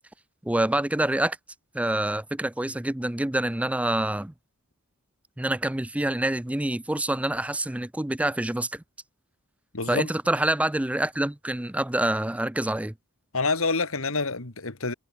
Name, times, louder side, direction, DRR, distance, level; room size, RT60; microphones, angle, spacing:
voice 1, 0.4-1.4 1.7-4.3 5.4-8.8 9.9-12.9, right 1 dB, 5° right, 0.5 m, -26 dB
voice 2, 9.7-10.1 13.3-14.9, left 3 dB, 70° left, 2.3 m, -27 dB
head